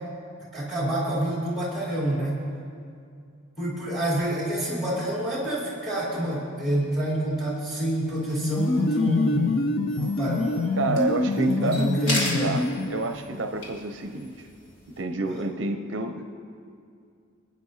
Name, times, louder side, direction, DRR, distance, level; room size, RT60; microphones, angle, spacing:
voice 1, 0.5-2.4 3.6-10.8 11.3-12.7 15.2-15.4, right 1 dB, ahead, -6 dB, 3.5 m, -28 dB
sound 1, 8.3-13.2, left 3 dB, 45° left, 0.4 m, -26 dB
sound 2, 9.9-15.0, left 1 dB, 65° left, 3.2 m, -36 dB
voice 2, 10.8-11.9 12.4-14.5 15.0-16.3, right 2 dB, 60° right, 6 dB, 0.6 m, -28 dB
27.0 x 9.2 x 2.8 m, 2.3 s
head